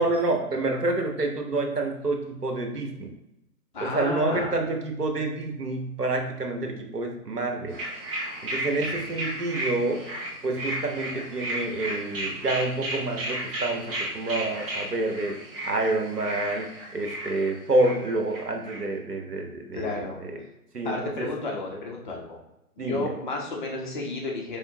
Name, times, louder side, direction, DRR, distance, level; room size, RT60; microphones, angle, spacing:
voice 1, 0.0-3.1 3.8-7.8 8.4-10.1 10.4-15.4 15.6-20.4 20.7-21.3 22.8-23.1, right 2 dB, 90° right, 2 dB, 1.0 m, -28 dB
voice 2, 3.7-4.6 8.8-9.2 19.7-20.2 20.8-22.4 22.8-24.6, left 2 dB, 30° left, -1 dB, 0.8 m, -32 dB
sound 1, 7.7-18.8, right 1 dB, 35° right, 1.2 m, -34 dB
4.5 x 3.5 x 2.7 m, 0.90 s
figure-of-eight pair, 130°, 46 cm